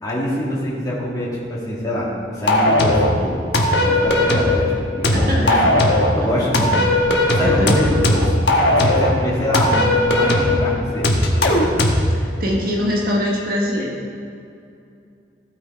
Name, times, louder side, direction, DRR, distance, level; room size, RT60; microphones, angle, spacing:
voice 1, 0.0-5.8 6.1-6.8 7.3-8.2 8.7-11.1 11.4-11.7, equal, 20° left, -7 dB, 2.3 m, -24 dB
sound 1, 2.5-3.1 3.5-4.6 5.0-6.1 6.5-9.1 9.5-10.6 11.0-12.1, left 1 dB, 75° left, 1.2 m, -17 dB
voice 2, 5.1-5.7 6.1-6.5 7.4-7.8 12.1-13.9, equal, 55° right, -1 dB, 1.3 m, -23 dB
15.5 x 6.1 x 4.5 m, 2.5 s
head